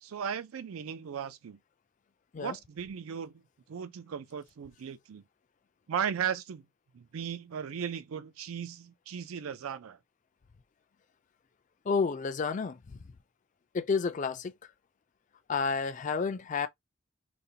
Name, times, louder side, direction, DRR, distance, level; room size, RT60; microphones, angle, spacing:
voice 1, 0.0-1.6 2.4-3.4 3.7-5.2 5.9-6.7 6.9-10.0, right 7 dB, 90° right, 0.4 m, -36 dB
voice 2, 11.9-12.8 13.7-14.5 15.5-16.7, left 5 dB, 35° left, 0.4 m, -30 dB
5.1 x 2.1 x 2.8 m
head